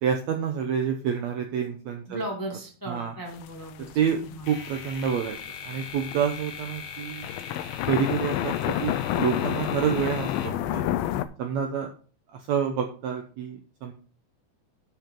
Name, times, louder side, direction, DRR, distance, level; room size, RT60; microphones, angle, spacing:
voice 1, 0.0-2.2 2.9-3.1 4.0-4.2 4.5-5.4 5.6-7.3 7.9-10.8 11.4-11.9 12.3-13.9, right 7 dB, 70° right, 5 dB, 1.8 m, -28 dB
voice 2, 2.1-4.5, right 1 dB, 10° left, 0 dB, 1.4 m, -36 dB
sound 1, 3.3-4.5 4.8-6.4 6.8-6.9 7.1-11.2, left 13 dB, 85° left, 2.4 m, -29 dB
sound 2, 4.5-11.2, left 6 dB, 60° left, 1.8 m, -41 dB
12.0 x 5.8 x 3.7 m, 0.38 s
omnidirectional pair, 4.0 m